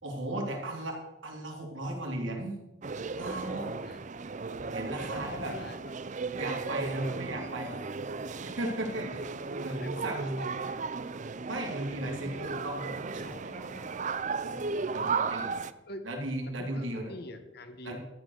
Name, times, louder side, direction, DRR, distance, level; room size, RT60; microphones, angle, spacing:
voice 1, 0.0-2.5 3.1-3.7 4.7-5.5 6.3-7.8 8.6-9.2 9.6-10.4 11.4-14.0 14.4-14.6 14.9-15.5 16.0-17.1 17.8-18.0, right 1 dB, 85° right, 1 dB, 3.4 m, -36 dB
sound 1, 2.8-15.7, right 4 dB, 40° right, 0.5 m, -35 dB
voice 2, 5.1-5.8 9.0-9.4 9.7-10.1 10.4-10.9 15.9-16.1 16.4-18.0, left 1 dB, 55° left, 8 dB, 1.6 m, -46 dB
13.0 x 9.8 x 6.6 m, 0.99 s
head